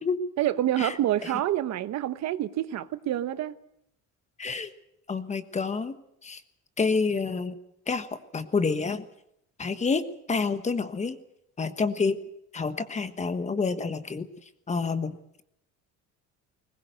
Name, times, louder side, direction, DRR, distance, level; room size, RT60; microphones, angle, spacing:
voice 1, 0.4-3.5, right 12 dB, 55° right, 13 dB, 1.0 m, -27 dB
voice 2, 4.4-4.7 5.1-5.9 6.2-6.4 6.8-7.6 7.9-8.1 8.3-9.0 9.6-10.0 10.3-11.2 11.6-12.2 12.5-14.3 14.7-15.4, left 4 dB, 20° left, 11 dB, 1.3 m, -28 dB
21.0 x 20.0 x 8.1 m, 0.77 s
cardioid pair, 155°, 32 cm